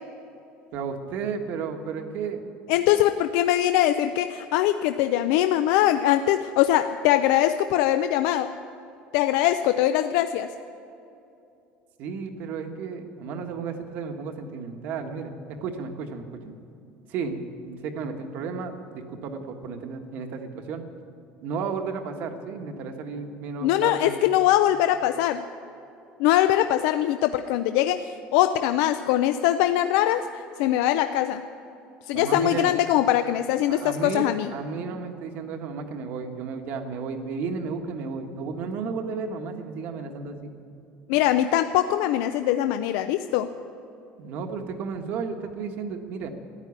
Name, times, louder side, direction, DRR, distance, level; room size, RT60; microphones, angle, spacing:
voice 1, 0.7-2.4 12.0-16.5 17.1-20.8 21.4-24.2 32.1-32.7 33.7-40.5 44.2-46.3, right 5 dB, 50° right, 5 dB, 1.4 m, -33 dB
voice 2, 2.7-8.5 9.1-10.5 23.6-25.4 26.2-30.3 30.6-31.4 32.0-34.5 41.1-43.5, left 12 dB, 75° left, 9 dB, 0.5 m, -22 dB
13.5 x 10.5 x 9.6 m, 2.7 s
cardioid pair, 175°, 4 cm